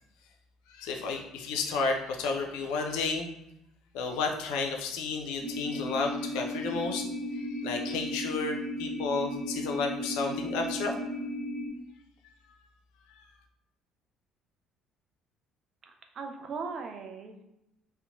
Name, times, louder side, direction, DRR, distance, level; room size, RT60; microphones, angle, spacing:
voice 1, 0.7-3.3 3.9-7.1 7.3-10.9, left 4 dB, 70° left, 2 dB, 0.4 m, -32 dB
sound 1, 5.4-11.7, left 1 dB, 5° left, 1.1 m, -35 dB
voice 2, 15.8-17.4, right 5 dB, 50° right, 4 dB, 0.4 m, -39 dB
2.7 x 2.1 x 2.5 m, 0.86 s
hypercardioid pair, 60°, 0 cm